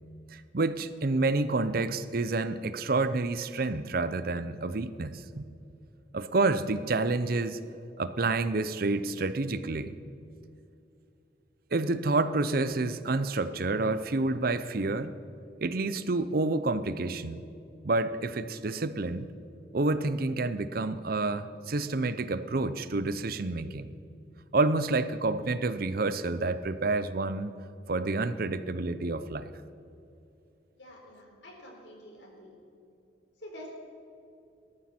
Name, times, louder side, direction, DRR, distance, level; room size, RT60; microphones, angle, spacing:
voice 1, 0.3-5.4 6.1-7.6 8.0-10.0 11.7-15.1 15.6-17.5 17.8-19.3 19.7-23.9 24.5-27.5 27.9-29.5, right 3 dB, 55° right, 13 dB, 0.6 m, -29 dB
voice 2, 30.8-32.5 33.4-33.7, equal, 85° left, -1 dB, 4.3 m, -48 dB
19.5 x 13.5 x 4.4 m, 2.6 s
head